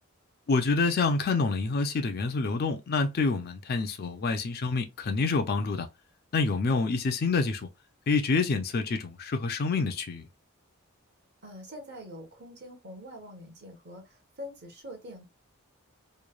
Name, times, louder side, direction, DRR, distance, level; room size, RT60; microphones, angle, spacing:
voice 1, 0.5-5.9 6.3-7.7 8.1-10.3, left 4 dB, 45° left, 0.4 m, -27 dB
voice 2, 11.4-15.2, left 1 dB, 50° right, 1.0 m, -44 dB
3.1 x 2.1 x 2.2 m
head